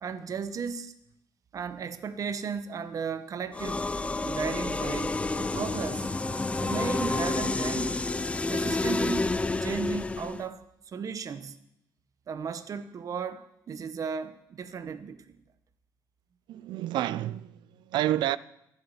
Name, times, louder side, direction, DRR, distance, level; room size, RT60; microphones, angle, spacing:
voice 1, 0.0-0.9 1.5-3.8 4.2-6.1 6.6-8.0 8.5-9.3 9.6-11.6 12.3-15.4, right 6 dB, 50° right, 1.0 m, -35 dB
sound 1, 3.5-10.5, left 3 dB, 15° left, 0.6 m, -29 dB
voice 2, 16.5-18.4, right 13 dB, 85° right, 0.5 m, -29 dB
13.0 x 8.3 x 9.8 m
cardioid pair, 105°, 8 cm